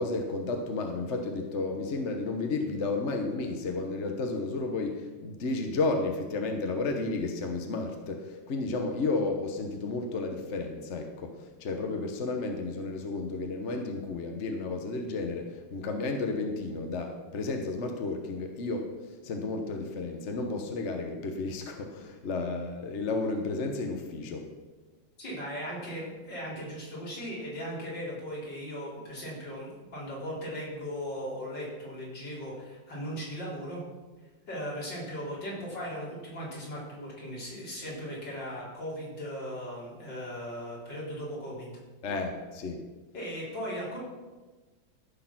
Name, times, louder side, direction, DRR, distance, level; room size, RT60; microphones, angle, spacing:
voice 1, 0.0-19.0 19.2-24.5 42.0-42.8, left 3 dB, 45° left, 4 dB, 1.1 m, -32 dB
voice 2, 25.2-33.8 34.5-41.8 43.1-44.0, equal, 65° left, -5 dB, 4.5 m, -38 dB
14.5 x 6.6 x 6.0 m, 1.3 s
omnidirectional pair, 2.1 m